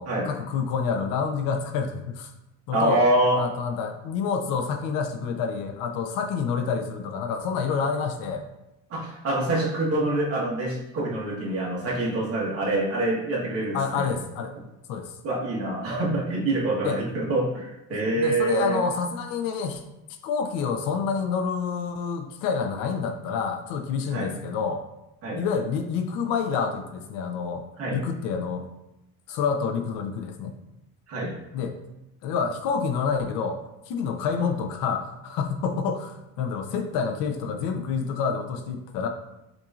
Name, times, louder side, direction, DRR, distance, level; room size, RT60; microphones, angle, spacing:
voice 1, 0.0-2.3 2.7-3.0 3.4-8.4 13.7-14.5 14.9-15.1 16.8-17.0 17.9-19.8 20.2-24.8 25.4-27.6 27.9-28.7 29.3-30.5 31.5-31.8 32.2-33.6 33.9-39.1, left 6 dB, 85° left, 5 dB, 0.6 m, -28 dB
voice 2, 2.7-3.4 8.9-14.1 15.2-18.8 24.1-24.3 25.2-25.4 27.8-28.0 31.1-31.4, right 2 dB, 50° right, -4 dB, 1.2 m, -26 dB
5.9 x 2.7 x 2.4 m, 0.90 s
cardioid pair, 150°, 32 cm